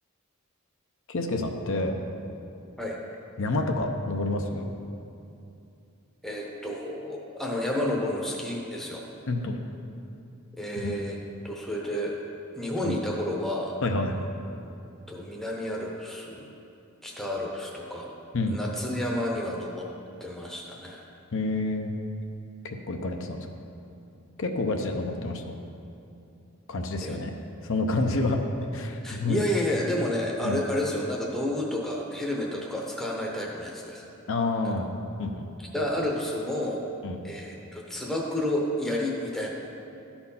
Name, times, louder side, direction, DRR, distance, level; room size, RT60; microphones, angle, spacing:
voice 1, 1.1-1.9 3.4-4.7 9.3-9.6 10.8-10.9 12.8-12.9 13.8-14.2 18.3-18.6 21.3-21.9 22.6-23.5 24.4-25.5 26.7-27.3 27.6-28.4 28.7-29.4 30.4-30.6 34.3-34.9 35.2-35.5 37.0-37.2, left 2 dB, 60° left, 3 dB, 0.7 m, -28 dB
voice 2, 6.2-9.1 10.5-11.2 11.4-12.1 12.6-13.7 14.6-14.8 15.1-16.5 17.0-18.1 18.5-19.9 20.2-21.0 27.0-27.2 29.0-34.1 34.6-34.7 35.7-36.8 37.2-39.5, left 1 dB, ahead, -2 dB, 0.8 m, -30 dB
12.0 x 4.4 x 5.5 m, 2.7 s
head